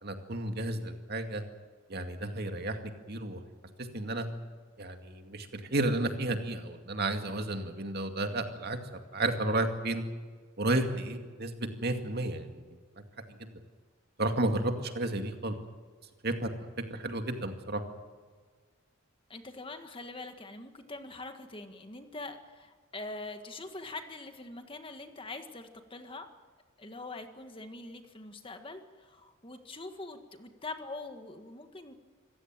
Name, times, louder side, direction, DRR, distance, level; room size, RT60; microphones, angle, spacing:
voice 1, 0.0-1.4 1.9-2.8 3.1-3.4 3.9-4.3 4.8-8.8 9.1-10.0 10.6-11.5 11.8-12.6 13.4-13.5 14.2-15.6 16.2-17.8, right 2 dB, 50° right, 5 dB, 2.3 m, -32 dB
voice 2, 19.3-26.3 26.8-31.9, left 2 dB, 25° left, 7 dB, 1.7 m, -43 dB
26.5 x 15.5 x 9.0 m, 1.5 s
head